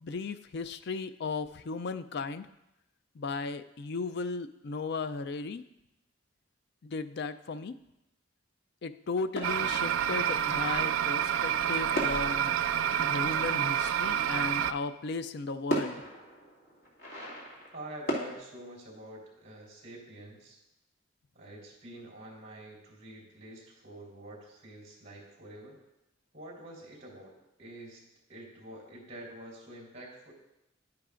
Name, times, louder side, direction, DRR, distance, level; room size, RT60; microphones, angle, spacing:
voice 1, 0.0-2.5 3.2-5.6 6.8-7.7 8.8-12.6 13.0-16.0, left 4 dB, 60° left, 12 dB, 0.4 m, -36 dB
sound 1, 9.4-10.8 11.9-13.9 15.1-15.2 15.7-18.3, equal, 75° left, 2.3 m, -38 dB
sound 2, 9.4-14.7, right 10 dB, 75° right, 0.3 m, -28 dB
voice 2, 17.7-20.6 21.3-25.8 26.3-30.3, right 1 dB, 40° right, -4 dB, 3.7 m, -47 dB
11.0 x 10.5 x 2.5 m, 0.89 s
head